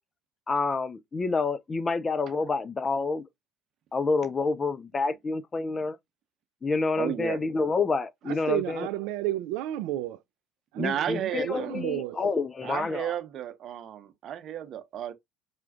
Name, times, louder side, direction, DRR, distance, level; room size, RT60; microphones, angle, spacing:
voice 1, 0.5-3.2 3.9-6.0 6.6-8.9 10.8-13.1, left 4 dB, 30° left, 0.5 m, -28 dB
voice 2, 7.0-7.4 10.7-11.7 12.6-15.1, right 9 dB, 50° right, 0.8 m, -32 dB
voice 3, 8.3-10.2 10.7-12.2, right 14 dB, 65° right, 0.3 m, -32 dB
5.7 x 2.4 x 2.4 m
hypercardioid pair, 60°, 0 cm